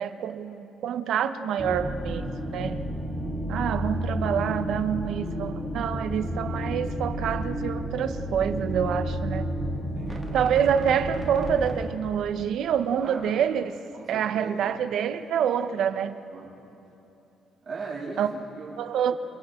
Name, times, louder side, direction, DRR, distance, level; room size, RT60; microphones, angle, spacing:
voice 1, 0.0-2.8 3.5-9.5 10.3-13.8 14.1-16.2 18.2-18.3 18.8-19.1, right 8 dB, 65° right, 9 dB, 1.0 m, -27 dB
sound 1, 1.6-11.9, equal, 5° left, 2.2 m, -31 dB
voice 2, 10.0-10.3 13.0-13.4 13.9-14.8 16.3-16.5 17.6-18.7, right 4 dB, 30° right, -6 dB, 7.2 m, -38 dB
29.0 x 28.5 x 3.8 m, 2.9 s
cardioid pair, 145°, 0 cm